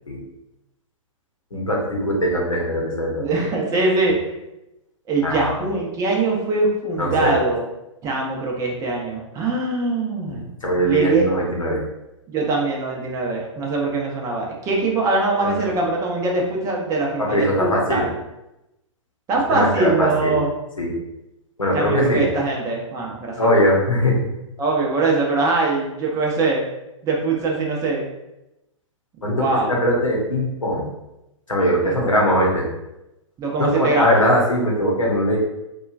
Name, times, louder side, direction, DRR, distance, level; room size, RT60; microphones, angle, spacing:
voice 1, 1.5-3.3 5.2-5.7 7.0-7.3 10.3-11.8 15.4-15.6 17.2-18.1 19.5-20.4 20.8-20.9 21.6-22.2 23.3-24.3 29.2-30.9 31.5-32.7 33.6-35.4, equal, 90° left, -2 dB, 0.8 m, -21 dB
voice 2, 3.2-4.2 5.1-7.6 8.0-10.5 10.8-11.3 12.3-18.1 19.3-20.5 21.7-23.3 24.6-26.6 27.0-28.0 29.2-29.7 31.8-32.1 33.4-34.2, right 3 dB, 20° right, -2 dB, 0.6 m, -22 dB
2.9 x 2.3 x 2.4 m, 0.92 s
figure-of-eight pair, 110°, 16 cm